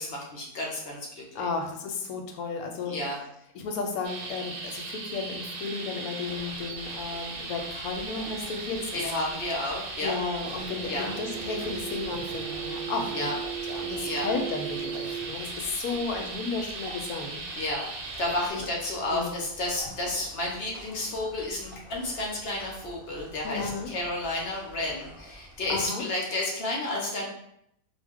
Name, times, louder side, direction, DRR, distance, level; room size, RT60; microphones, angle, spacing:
voice 1, 0.0-1.5 2.9-3.2 8.9-10.2 10.9-11.1 13.1-13.4 14.0-14.3 15.4-15.5 17.6-17.8 18.2-27.3, left 1 dB, 55° left, -2 dB, 0.7 m, -31 dB
voice 2, 1.3-3.0 3.5-9.0 10.0-13.4 13.7-17.4 18.5-18.7 19.1-19.4 23.4-23.9 25.7-26.1, left 4 dB, 75° left, 3 dB, 1.0 m, -33 dB
sound 1, 4.0-18.5, right 3 dB, 85° right, 1.1 m, -38 dB
sound 2, 6.2-25.9, left 1 dB, 25° left, 0.9 m, -48 dB
sound 3, 10.4-15.2, right 8 dB, 65° right, 0.8 m, -37 dB
2.4 x 2.1 x 3.5 m, 0.74 s
omnidirectional pair, 1.6 m